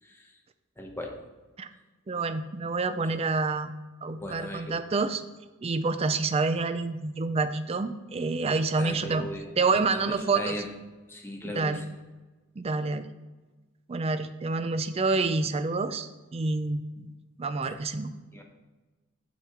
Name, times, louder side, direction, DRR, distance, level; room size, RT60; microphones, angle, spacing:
voice 1, 0.0-0.4 0.8-1.2 4.2-4.7 8.8-10.7 11.1-11.9 17.6-17.8 18.3-18.4, left 1 dB, 10° left, 2 dB, 0.9 m, -38 dB
voice 2, 2.1-3.7 4.0-5.2 5.6-9.3 9.6-10.5 11.6-11.8 12.6-13.1 13.9-17.1 17.4-18.1, right 3 dB, 30° right, 11 dB, 0.4 m, -28 dB
7.4 x 7.0 x 3.6 m, 1.2 s
head